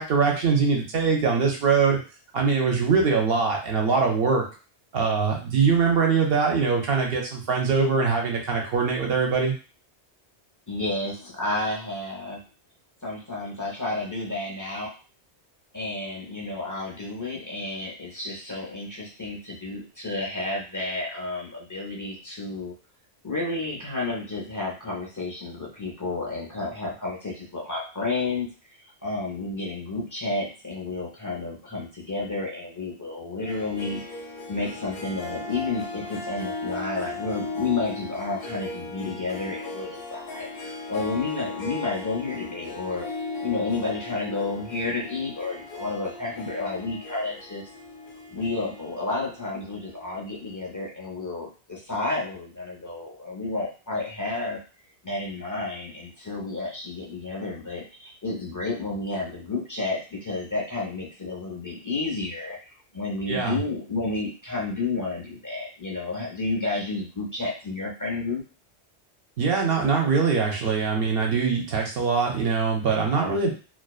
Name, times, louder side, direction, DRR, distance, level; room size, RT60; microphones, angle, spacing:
voice 1, 0.0-2.0 2.3-4.4 4.9-9.5 63.3-63.6 69.4-73.5, right 5 dB, 65° right, 1 dB, 0.7 m, -22 dB
voice 2, 10.7-12.4 13.0-14.9 15.7-22.7 23.2-28.5 29.0-34.0 34.5-43.1 43.4-47.7 48.3-54.6 55.0-68.4, left 3 dB, 25° left, -3 dB, 0.4 m, -31 dB
Harp, 33.4-50.2, left 3 dB, 65° left, 0.7 m, -37 dB
2.5 x 2.2 x 2.3 m, 0.35 s
omnidirectional pair, 1.1 m